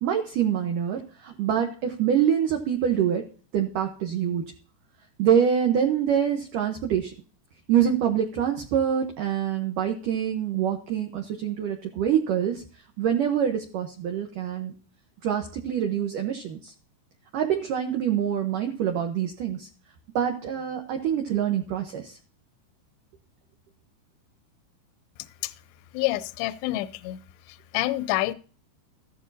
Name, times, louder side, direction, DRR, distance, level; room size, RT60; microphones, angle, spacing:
voice 1, 0.0-3.2 3.5-4.4 5.2-7.1 7.7-12.6 13.0-14.7 15.2-16.7 17.3-19.7 20.2-22.2, right 9 dB, 75° right, 3 dB, 2.0 m, -25 dB
voice 2, 25.9-27.2 27.5-28.3, left 17 dB, 80° left, 13 dB, 2.6 m, -28 dB
14.5 x 13.5 x 2.8 m, 0.39 s
omnidirectional pair, 5.3 m